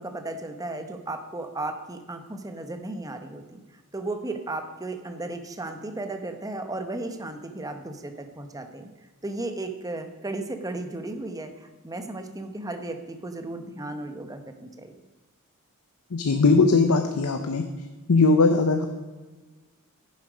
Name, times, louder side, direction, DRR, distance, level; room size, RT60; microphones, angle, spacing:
voice 1, 0.0-3.6 3.9-8.9 9.2-14.9, right 2 dB, 15° right, 7 dB, 0.8 m, -35 dB
voice 2, 16.1-17.6 18.1-18.9, left 3 dB, 85° left, 6 dB, 0.7 m, -19 dB
9.8 x 7.5 x 5.0 m, 1.3 s
head